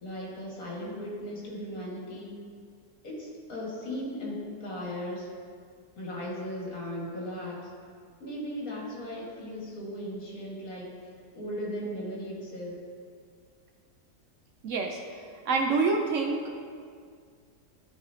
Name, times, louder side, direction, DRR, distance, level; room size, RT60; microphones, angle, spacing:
voice 1, 0.0-2.3 3.0-5.3 6.0-7.7 8.2-10.9 11.3-12.8, equal, 60° left, -4 dB, 2.2 m, -37 dB
voice 2, 14.6-15.0 15.5-16.7, right 4 dB, 65° right, 3 dB, 0.8 m, -27 dB
13.0 x 4.9 x 2.8 m, 2.1 s
omnidirectional pair, 1.7 m